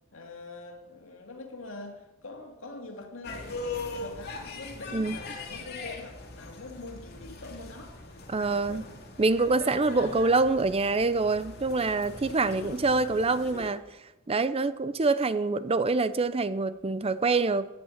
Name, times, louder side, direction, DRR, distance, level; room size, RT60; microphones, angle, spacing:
voice 1, 0.1-9.0 9.9-10.2 12.5-13.2, left 3 dB, 70° left, 2.5 m, -44 dB
sound 1, 3.2-13.7, left 3 dB, 50° left, 2.7 m, -41 dB
voice 2, 8.3-8.8 9.2-13.8 14.3-17.7, right 3 dB, 30° right, 0.5 m, -25 dB
16.0 x 9.7 x 7.2 m
head